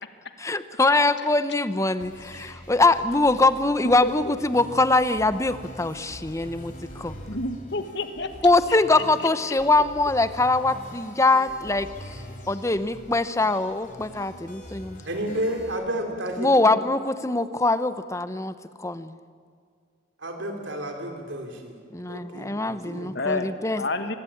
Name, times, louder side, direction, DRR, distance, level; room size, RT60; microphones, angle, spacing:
voice 1, 0.4-7.1 8.4-12.2 12.5-15.0 16.4-18.5 18.8-19.1 21.9-23.8, left 2 dB, 15° left, 12 dB, 0.9 m, -23 dB
sound 1, 2.0-15.7, equal, 45° left, 4.2 m, -43 dB
voice 2, 4.0-4.4 7.3-8.3 23.1-23.5 23.8-24.1, left 2 dB, 60° left, 8 dB, 1.6 m, -29 dB
voice 3, 15.0-16.8 20.2-21.8 22.1-23.1, right 1 dB, 75° right, 3 dB, 3.2 m, -31 dB
24.0 x 21.5 x 8.7 m, 2.2 s
head